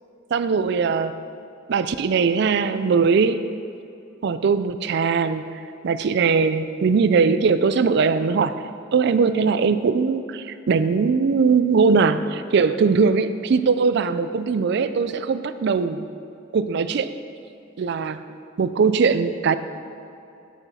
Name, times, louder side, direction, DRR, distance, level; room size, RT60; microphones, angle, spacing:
voice 1, 0.3-1.2 1.7-3.4 4.2-8.6 8.9-16.1 16.5-17.1 17.8-18.2 18.6-19.5, right 5 dB, 55° right, 12 dB, 0.4 m, -20 dB
9.3 x 6.9 x 4.2 m, 2.7 s
head